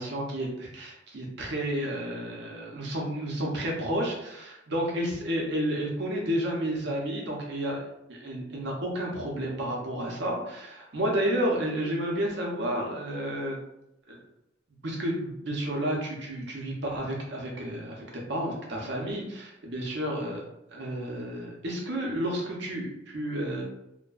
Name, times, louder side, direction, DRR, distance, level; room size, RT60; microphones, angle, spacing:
voice 1, 0.0-7.8 8.1-13.6 14.1-14.2 14.8-20.4 20.7-23.6, right 1 dB, 60° right, -1 dB, 0.6 m, -31 dB
2.5 x 2.1 x 2.3 m, 0.83 s
head